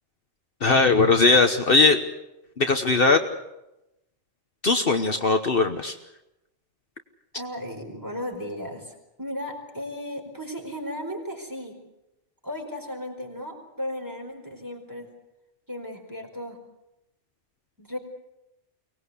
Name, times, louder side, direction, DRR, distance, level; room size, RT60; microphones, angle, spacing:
voice 1, 0.6-2.0 2.6-3.2 4.6-5.9, left 3 dB, 55° left, 6 dB, 1.3 m, -19 dB
voice 2, 7.3-11.8 12.4-15.1 15.7-16.6 17.8-18.0, left 1 dB, 15° right, 2 dB, 4.7 m, -35 dB
24.0 x 19.0 x 8.3 m, 0.92 s
omnidirectional pair, 1.2 m